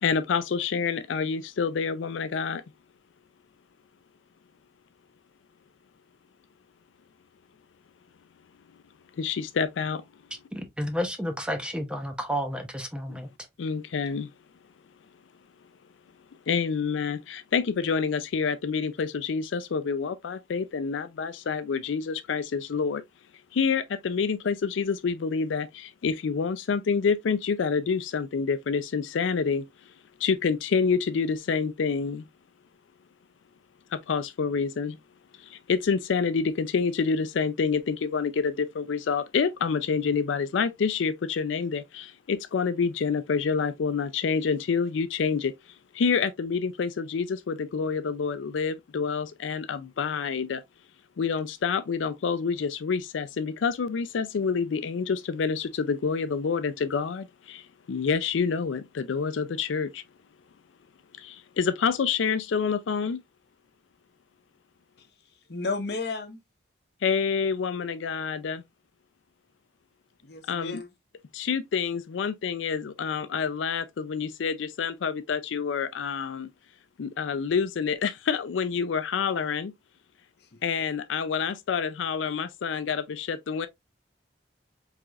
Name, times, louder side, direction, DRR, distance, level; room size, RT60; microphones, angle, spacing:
voice 1, 0.0-2.6 9.2-10.0 13.6-14.3 16.5-23.0 23.5-29.9 30.2-32.2 33.9-35.0 35.4-45.5 45.9-50.6 51.2-60.0 61.2-63.2 67.0-68.6 70.5-70.8 71.3-76.5 77.0-79.7 80.6-83.7, left 5 dB, 85° left, 0.4 m, -27 dB
voice 2, 10.5-13.3, equal, 5° right, 0.7 m, -31 dB
voice 3, 65.5-66.4 70.2-70.9, left 3 dB, 60° left, 1.0 m, -32 dB
4.8 x 3.7 x 2.3 m
head